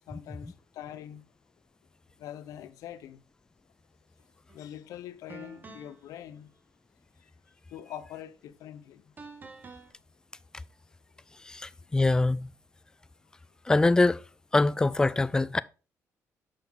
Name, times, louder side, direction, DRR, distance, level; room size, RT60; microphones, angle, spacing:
voice 1, 0.1-1.2 2.2-3.2 4.5-6.5 7.7-9.0, left 11 dB, 80° left, 0.7 m, -43 dB
sound 1, 4.5-4.7 5.3-6.1 9.2-9.9, right 4 dB, 35° right, 1.2 m, -47 dB
voice 2, 11.4-12.5 13.7-14.2 14.5-15.6, left 2 dB, 10° left, 0.3 m, -24 dB
6.5 x 5.7 x 3.9 m
cardioid pair, 100°, 6 cm